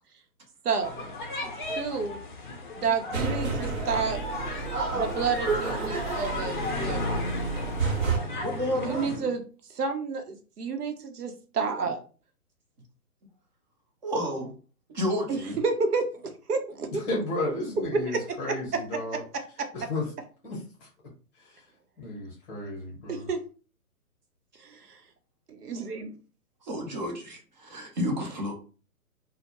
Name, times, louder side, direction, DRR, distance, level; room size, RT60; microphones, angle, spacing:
voice 1, 0.6-1.1 1.4-2.2 2.8-4.2 4.9-7.4 8.7-9.4 9.7-12.0 15.3-15.4 15.6-16.9 23.1-23.4 24.6-25.0 25.5-26.1, right 5 dB, 85° right, 5 dB, 0.7 m, -30 dB
sound 1, 0.8-9.2, left 2 dB, 35° left, 0.4 m, -34 dB
sound 2, 3.1-8.2, right 4 dB, 65° right, 1.0 m, -30 dB
voice 2, 8.4-9.3 14.0-14.5 14.9-15.6 26.6-28.5, equal, 30° right, 2 dB, 0.5 m, -31 dB
voice 3, 16.9-19.2 19.7-20.1 20.4-20.9 21.4-21.6 22.0-23.3, left 2 dB, 15° left, -4 dB, 0.8 m, -33 dB
2.1 x 2.1 x 2.9 m, 0.37 s
figure-of-eight pair, 135°, 45 cm